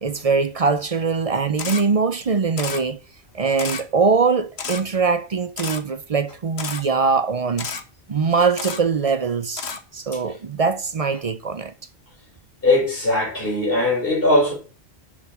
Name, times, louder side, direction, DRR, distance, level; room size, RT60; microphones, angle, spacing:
voice 1, 0.0-3.0 3.3-7.7 8.1-9.6 9.9-11.7, right 5 dB, 45° right, 0.6 m, -22 dB
Camera, 1.6-1.8 2.6-2.8 3.6-3.8 4.6-4.8 5.6-5.8 6.6-6.8 7.6-7.8 8.6-8.8 9.6-9.8, left 5 dB, 75° left, 1.4 m, -30 dB
voice 2, 12.6-14.5, left 2 dB, 60° left, 4.5 m, -19 dB
7.2 x 6.6 x 7.1 m
omnidirectional pair, 1.1 m